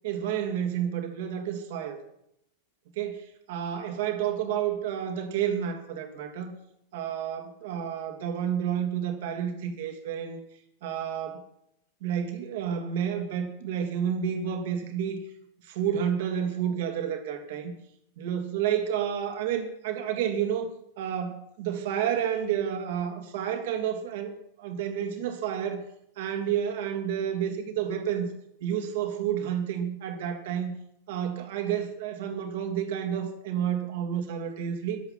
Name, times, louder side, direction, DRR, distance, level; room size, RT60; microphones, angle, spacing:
voice 1, 0.0-2.0 3.0-6.6 6.9-10.4 10.8-11.4 12.0-15.2 15.6-17.7 18.2-20.7 21.0-24.3 24.6-25.8 26.2-28.3 28.6-30.7 31.1-35.0, right 9 dB, 55° right, 5 dB, 3.0 m, -30 dB
23.5 x 8.3 x 5.8 m, 0.74 s
figure-of-eight pair, 90°, 0 cm